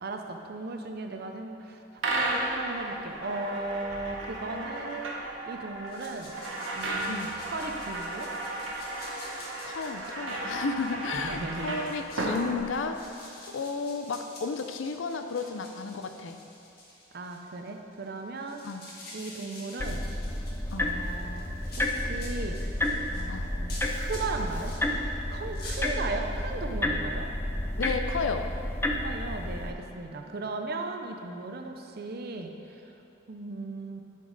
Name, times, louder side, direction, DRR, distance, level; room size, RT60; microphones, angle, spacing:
voice 1, 0.0-5.2 5.5-6.4 6.7-8.3 11.1-11.7 17.1-18.6 19.1-20.1 20.8-21.5 21.8-22.6 23.1-24.7 25.3-27.3 29.0-32.9 33.3-34.0, right 3 dB, 55° right, 4 dB, 0.6 m, -37 dB
sound 1, 2.0-13.2, right 2 dB, 80° right, 1.1 m, -34 dB
sound 2, 5.9-24.8 25.3-25.8, left 2 dB, 55° left, 1.5 m, -48 dB
voice 2, 9.7-16.4 18.6-18.8 20.7-20.9 23.3-23.5 27.8-28.5, left 4 dB, 75° left, 7 dB, 0.5 m, -33 dB
sound 3, 19.8-29.7, left 1 dB, 10° left, 0.4 m, -31 dB
10.5 x 5.3 x 4.0 m, 2.8 s
head